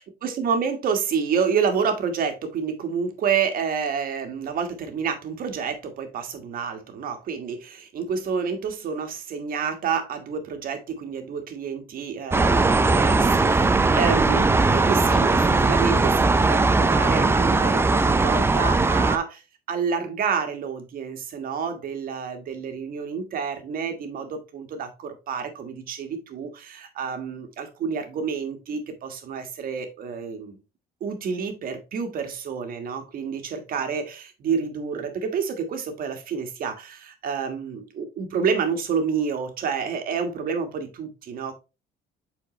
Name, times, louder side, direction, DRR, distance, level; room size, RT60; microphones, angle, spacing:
voice 1, 0.0-19.4 19.7-30.6 31.0-41.5, right 6 dB, 60° right, 1.5 m, -29 dB
sound 1, 12.3-19.2, right 3 dB, 15° right, 0.5 m, -19 dB
7.5 x 4.3 x 3.1 m
cardioid pair, 110°, 17 cm